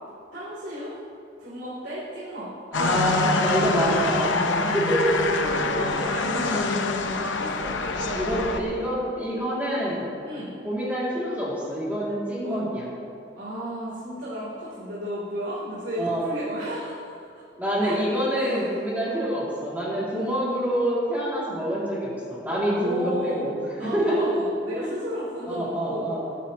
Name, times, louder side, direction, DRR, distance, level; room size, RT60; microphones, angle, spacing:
voice 1, 0.3-0.9 1.4-2.5 4.5-8.7 10.2-10.5 12.4-12.7 13.3-17.2 17.8-18.0 18.3-18.7 19.0-19.3 20.1-20.4 22.7-26.1, equal, 75° right, -9 dB, 2.9 m, -34 dB
sound 1, 2.7-8.6, left 3 dB, 85° left, 0.8 m, -25 dB
voice 2, 2.7-5.2 5.8-5.9 8.1-10.0 10.6-12.9 16.0-16.3 17.6-23.5 23.8-24.5 24.7-25.0 25.4-26.3, equal, 10° right, -8 dB, 2.4 m, -26 dB
20.0 x 9.9 x 2.9 m, 2.5 s
head